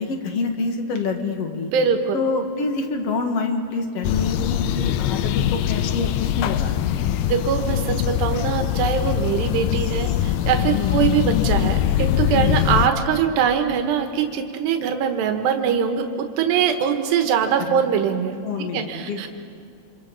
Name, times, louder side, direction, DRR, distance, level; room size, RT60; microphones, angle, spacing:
voice 1, 0.0-1.7 2.1-6.8 10.7-11.0 12.3-12.6 17.7-17.8 18.4-19.2, left 4 dB, 50° left, 4 dB, 2.0 m, -26 dB
voice 2, 1.7-2.2 7.3-18.4 18.7-19.3, right 8 dB, 85° right, 5 dB, 3.5 m, -22 dB
sound 1, 4.0-12.9, left 12 dB, 80° left, 2.2 m, -22 dB
28.5 x 26.0 x 5.4 m, 2.6 s
omnidirectional pair, 4.8 m